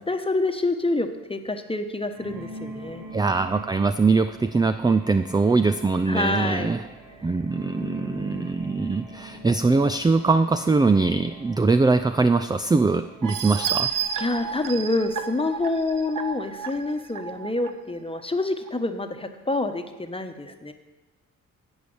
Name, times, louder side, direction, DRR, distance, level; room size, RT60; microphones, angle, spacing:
voice 1, 0.1-3.0 6.1-6.7 7.2-7.3 7.7-8.5 14.2-20.7, left 2 dB, 15° left, 7 dB, 1.1 m, -27 dB
sound 1, 2.1-15.4, right 2 dB, 75° right, 2.3 m, -43 dB
voice 2, 3.1-6.8 7.2-13.9, right 3 dB, 10° right, 10 dB, 0.4 m, -22 dB
sound 2, 13.2-17.7 18.2-18.3 18.7-18.8, right 8 dB, 60° right, 0.9 m, -31 dB
9.4 x 5.5 x 8.0 m, 1.2 s
supercardioid pair, 45°, 37 cm